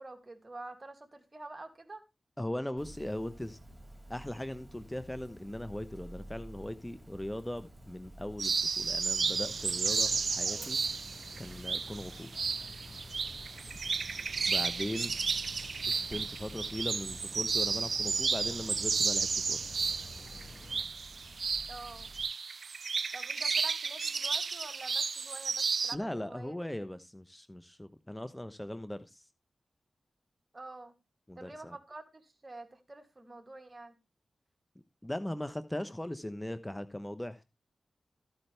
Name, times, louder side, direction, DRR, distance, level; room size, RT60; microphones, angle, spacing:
voice 1, 0.0-2.0 21.7-22.1 23.1-26.6 30.5-30.9 31.4-33.9, right 2 dB, 35° right, 2.5 m, -47 dB
voice 2, 2.4-3.6 4.1-10.8 11.4-12.3 14.4-15.1 15.9-19.6 25.9-29.3 31.3-31.8 35.0-37.5, left 1 dB, 15° left, 1.0 m, -39 dB
Dog, 2.8-22.2, right 1 dB, 20° right, 4.9 m, -52 dB
sound 1, 8.4-26.0, right 5 dB, 70° right, 0.5 m, -33 dB
Rain, 9.2-20.9, left 3 dB, 45° left, 0.9 m, -52 dB
14.0 x 8.9 x 3.4 m
cardioid pair, 45°, 0 cm